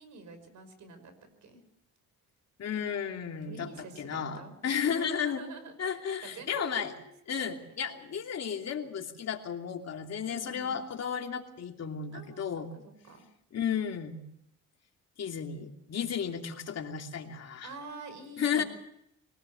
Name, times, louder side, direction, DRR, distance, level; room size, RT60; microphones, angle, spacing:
voice 1, 0.0-1.6 3.5-4.6 4.9-7.8 10.3-10.8 12.1-12.5 12.7-13.3 17.6-18.7, right 3 dB, 70° right, 9 dB, 5.7 m, -47 dB
voice 2, 2.6-3.7 4.0-5.4 5.8-6.9 7.3-12.7 13.5-14.2 15.2-17.7 18.4-18.6, left 7 dB, 55° left, 3 dB, 3.0 m, -33 dB
24.0 x 18.5 x 7.0 m, 0.76 s
cardioid pair, 90°, 30 cm